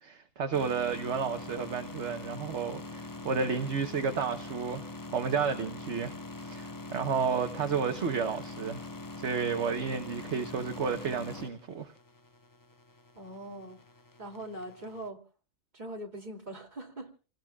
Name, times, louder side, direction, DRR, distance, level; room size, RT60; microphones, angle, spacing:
voice 1, 0.0-8.9 9.2-11.9, right 6 dB, 60° right, 1.3 m, -32 dB
sound 1, 0.5-15.1, left 2 dB, 20° left, 0.5 m, -43 dB
voice 2, 13.2-13.8 14.2-15.2 15.7-17.1, right 1 dB, 35° right, 3.0 m, -41 dB
29.0 x 20.0 x 2.4 m
omnidirectional pair, 1.4 m